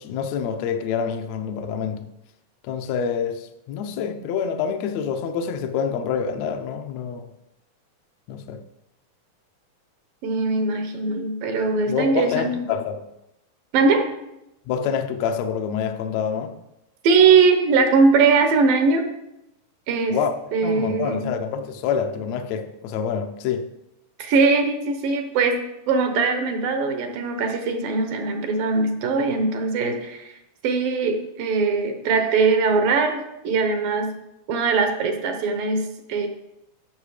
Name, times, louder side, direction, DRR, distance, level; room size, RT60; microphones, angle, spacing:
voice 1, 0.0-2.0 2.6-7.3 8.3-8.6 11.9-13.0 14.7-16.6 20.1-20.4 20.6-23.7, left 7 dB, 75° left, 1.7 m, -27 dB
voice 2, 10.2-12.5 13.7-14.1 17.0-19.1 19.9-20.2 20.5-21.4 24.2-30.4 30.6-34.2 34.5-36.3, right 4 dB, 80° right, 2.9 m, -21 dB
12.0 x 6.3 x 5.0 m
omnidirectional pair, 4.0 m